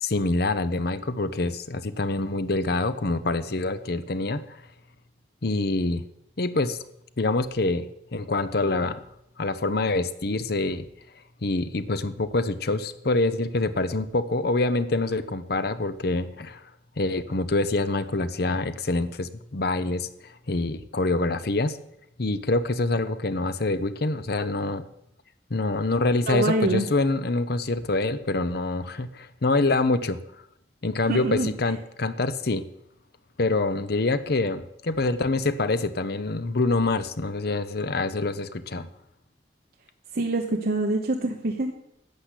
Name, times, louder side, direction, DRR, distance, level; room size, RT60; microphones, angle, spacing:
voice 1, 0.0-4.6 5.4-6.0 6.4-6.8 7.2-9.0 9.4-10.9 11.4-16.6 17.0-21.8 22.2-24.8 25.5-30.2 30.8-32.7 33.4-38.9, left 2 dB, 60° left, 12 dB, 0.8 m, -26 dB
voice 2, 26.3-26.8 31.1-31.5 40.1-41.7, right 2 dB, 55° right, 2 dB, 1.1 m, -25 dB
12.0 x 7.8 x 8.3 m, 0.78 s
head